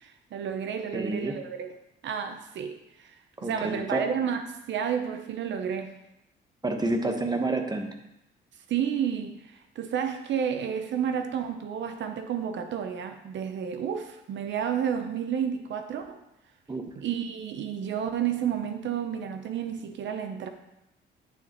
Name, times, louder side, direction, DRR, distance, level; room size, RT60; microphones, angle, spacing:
voice 1, 0.0-1.7 2.0-5.9 8.7-16.2 16.9-20.5, right 8 dB, 65° right, 7 dB, 0.7 m, -31 dB
voice 2, 0.9-1.4 3.4-4.1 6.6-8.0 16.7-16.8, right 2 dB, 20° right, 4 dB, 1.1 m, -29 dB
9.8 x 6.4 x 3.0 m, 0.88 s
cardioid pair, 90°, 20 cm